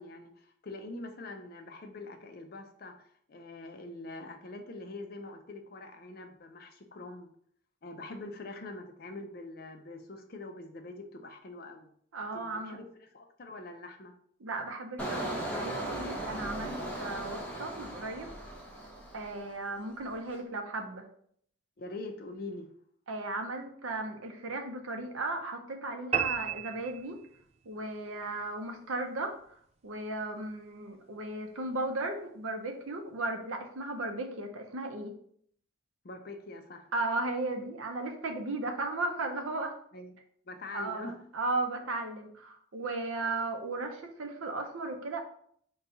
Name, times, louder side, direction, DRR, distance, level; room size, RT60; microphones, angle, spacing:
voice 1, 0.0-7.3 7.8-11.9 12.3-14.1 21.8-22.7 36.0-36.9 39.9-40.1 40.5-41.2, left 2 dB, 45° left, 5 dB, 0.5 m, -44 dB
voice 2, 12.1-12.8 14.4-18.3 19.1-21.1 23.1-27.2 27.7-29.4 29.8-35.1 36.9-39.8 40.7-45.2, right 2 dB, 85° right, 5 dB, 0.7 m, -35 dB
Engine, 15.0-19.6 20.0-20.4, right 1 dB, 10° left, 0.6 m, -38 dB
sound 1, 26.1-27.7, right 8 dB, 30° right, 0.3 m, -33 dB
4.1 x 2.3 x 3.8 m, 0.64 s
head